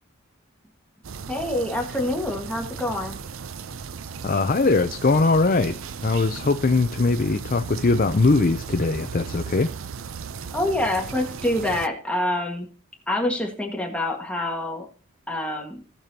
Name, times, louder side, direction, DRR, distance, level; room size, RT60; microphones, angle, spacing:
sound 1, 1.0-11.9, right 6 dB, 65° right, 0.5 m, -36 dB
voice 1, 1.3-3.2 10.5-12.7 13.1-14.9 15.3-15.8, left 1 dB, 5° left, 1.6 m, -26 dB
voice 2, 4.2-5.8 6.0-9.7, left 3 dB, 40° left, 0.5 m, -21 dB
18.0 x 6.8 x 2.8 m
head